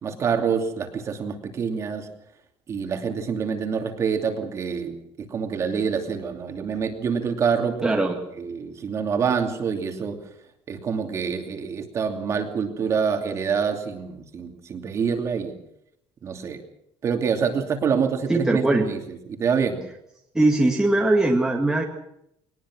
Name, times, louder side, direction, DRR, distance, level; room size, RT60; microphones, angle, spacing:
voice 1, 0.0-2.1 2.7-5.0 5.3-8.0 8.4-10.2 10.7-15.6 16.2-16.6 17.0-19.8, right 6 dB, 30° right, 5 dB, 2.7 m, -26 dB
voice 2, 7.8-8.2 18.3-18.9 20.4-21.8, right 2 dB, 5° right, 0 dB, 1.9 m, -20 dB
21.5 x 19.5 x 6.3 m, 0.78 s
cardioid pair, 175°, 9 cm